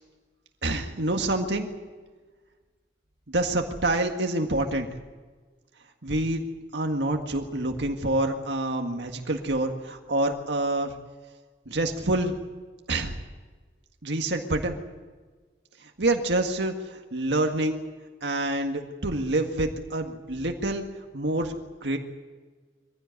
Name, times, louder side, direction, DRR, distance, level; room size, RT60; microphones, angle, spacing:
voice 1, 0.6-1.7 3.3-4.9 6.0-6.5 6.7-10.9 11.7-12.4 12.9-13.2 14.0-14.8 15.8-17.8 18.2-20.8 21.1-21.6 21.8-22.0, right 2 dB, 80° right, 3 dB, 1.8 m, -27 dB
23.5 x 16.0 x 9.6 m, 1.4 s
head